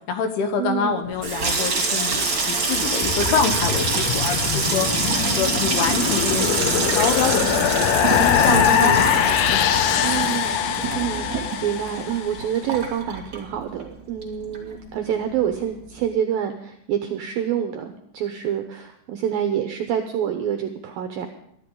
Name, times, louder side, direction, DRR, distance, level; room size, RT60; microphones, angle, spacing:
voice 1, 0.1-7.8 8.2-9.6, left 6 dB, 70° left, 7 dB, 2.7 m, -26 dB
voice 2, 0.6-1.0 8.8-9.0 10.0-10.6 10.9-21.3, right 9 dB, 80° right, 6 dB, 2.1 m, -27 dB
Water tap faucet / Sink (filling or washing), 1.1-13.9 14.2-14.9 15.1-15.5, right 4 dB, 30° right, 2.3 m, -25 dB
Guitar, 1.3-10.6, right 4 dB, 55° right, 1.1 m, -37 dB
sound 1, 3.0-12.4, left 9 dB, 90° left, 2.0 m, -22 dB
21.5 x 13.0 x 3.9 m, 0.69 s
omnidirectional pair, 5.3 m